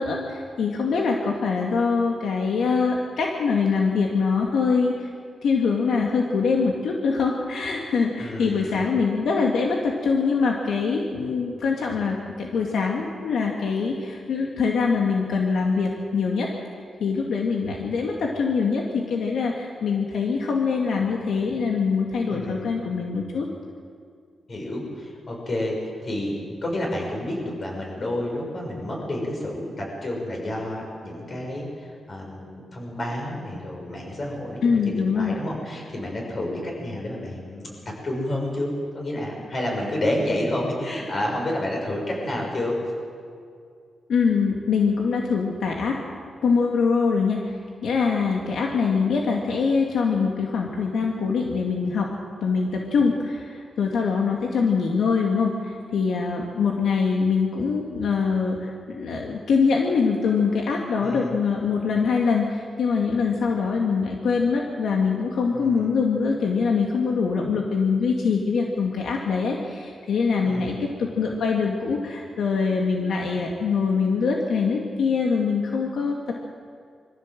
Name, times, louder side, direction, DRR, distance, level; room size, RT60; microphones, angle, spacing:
voice 1, 0.0-5.1 5.4-16.5 17.0-23.5 34.6-35.4 44.1-46.0 46.4-52.1 52.4-76.3, left 5 dB, 80° left, 0 dB, 2.2 m, -23 dB
voice 2, 8.2-8.8 22.3-22.6 24.5-26.4 26.6-42.8 61.0-61.4 65.5-65.9 70.4-70.8, left 1 dB, 40° left, 0 dB, 6.8 m, -30 dB
24.0 x 15.0 x 7.7 m, 2.3 s
cardioid pair, 100°, 0 cm